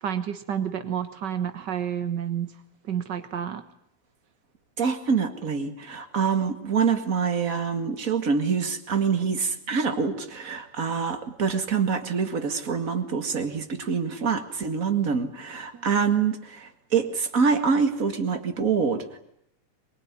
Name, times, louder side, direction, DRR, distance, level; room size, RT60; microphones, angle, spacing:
voice 1, 0.0-2.5 2.9-3.6 15.7-16.0, right 9 dB, 80° right, 9 dB, 0.9 m, -30 dB
voice 2, 4.8-19.2, right 6 dB, 30° right, 8 dB, 1.7 m, -25 dB
23.0 x 21.5 x 9.7 m, 0.77 s
omnidirectional pair, 3.8 m